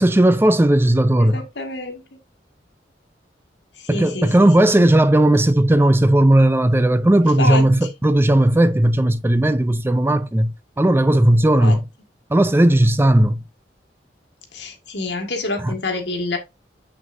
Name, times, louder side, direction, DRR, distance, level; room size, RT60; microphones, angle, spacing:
voice 1, 0.0-1.4 3.9-11.8 12.3-13.4 15.6-15.7, right 1 dB, 15° right, 0.4 m, -16 dB
voice 2, 1.2-2.0 3.8-4.7 7.4-7.7 11.6-11.8 14.5-16.4, left 2 dB, 80° left, 1.9 m, -27 dB
7.4 x 6.1 x 2.6 m
head